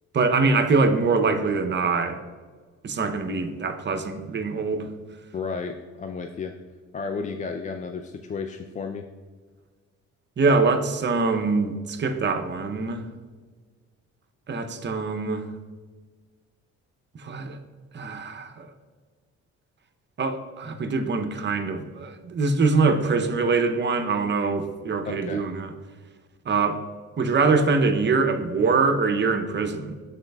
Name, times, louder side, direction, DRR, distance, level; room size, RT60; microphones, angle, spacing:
voice 1, 0.1-2.2 2.8-4.9 10.4-13.0 14.5-15.5 17.1-17.6 17.9-18.7 20.2-25.7 26.5-26.8 27.2-30.0, right 4 dB, 35° right, 7 dB, 0.7 m, -23 dB
voice 2, 5.3-6.5 6.9-9.1 25.1-25.4, left 5 dB, 25° left, 5 dB, 0.3 m, -32 dB
11.5 x 4.1 x 2.3 m, 1.5 s
cardioid pair, 90°, 30 cm